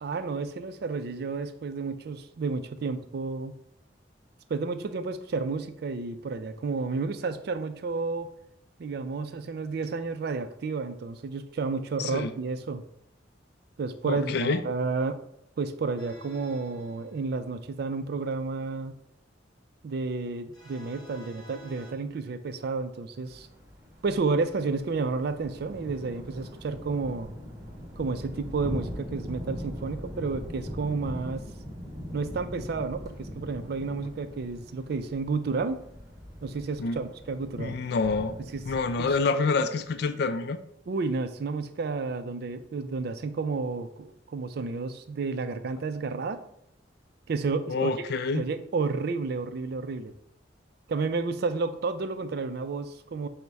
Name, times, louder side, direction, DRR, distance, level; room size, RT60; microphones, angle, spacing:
voice 1, 0.0-3.5 4.5-8.3 8.8-12.8 13.8-15.2 15.6-18.9 19.8-23.5 24.0-27.3 28.0-31.4 32.1-35.8 36.4-37.8 38.5-38.6 39.0-39.2 40.9-46.4 47.3-47.9 48.3-50.1 50.9-53.3, right 4 dB, 60° right, 10 dB, 0.4 m, -31 dB
voice 2, 12.0-12.3 14.1-14.6 36.8-37.0 37.6-38.4 38.7-40.6 47.7-48.4, left 4 dB, 60° left, 11 dB, 0.3 m, -27 dB
sound 1, 16.0-18.0 20.5-21.9, right 1 dB, 20° left, 0.9 m, -51 dB
sound 2, 23.3-39.2, equal, 20° right, 1.1 m, -41 dB
5.3 x 2.1 x 4.5 m, 0.74 s
head